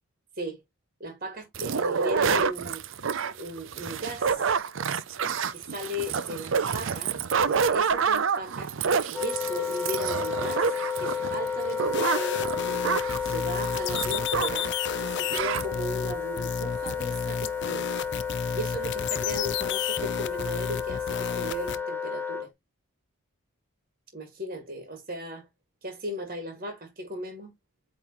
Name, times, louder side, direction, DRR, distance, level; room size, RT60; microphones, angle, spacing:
voice 1, 1.0-2.8 3.4-4.5 5.5-8.7 9.1-12.8 13.3-14.7 15.0-17.9 18.5-22.5 24.1-25.5 25.8-27.5, equal, 40° right, 2.1 m, -36 dB
sound 1, 1.5-14.7 15.0-15.1 15.3-15.7, right 6 dB, 60° right, 0.5 m, -28 dB
Wind instrument woodwind instrument, 9.1-22.5, left 6 dB, 10° left, 1.1 m, -32 dB
sound 2, 11.8-21.8, left 7 dB, 55° left, 0.5 m, -33 dB
8.4 x 3.8 x 3.0 m
head